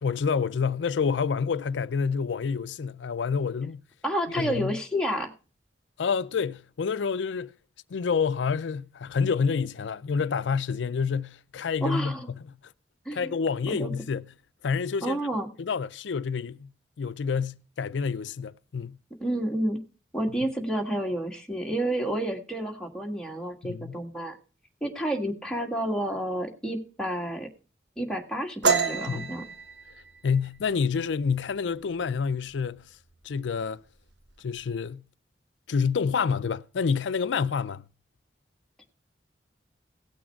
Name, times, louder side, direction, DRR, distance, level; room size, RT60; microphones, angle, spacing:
voice 1, 0.0-3.8 4.3-4.8 6.0-7.5 7.9-12.7 13.1-14.3 14.6-15.2 15.6-16.7 17.0-19.0 23.6-24.0 29.1-29.3 30.2-32.9 33.2-33.8 34.4-35.0 35.7-37.8, left 5 dB, 90° left, 0.4 m, -28 dB
voice 2, 4.0-5.3 11.8-12.3 13.0-13.3 13.7-13.9 15.0-15.5 19.2-19.8 20.1-24.4 24.8-27.5 28.0-29.4, right 1 dB, 5° left, 1.6 m, -30 dB
sound 1, 28.6-32.1 32.4-32.7 33.1-33.6 33.9-34.7, right 5 dB, 90° right, 1.3 m, -29 dB
17.0 x 6.2 x 4.5 m
head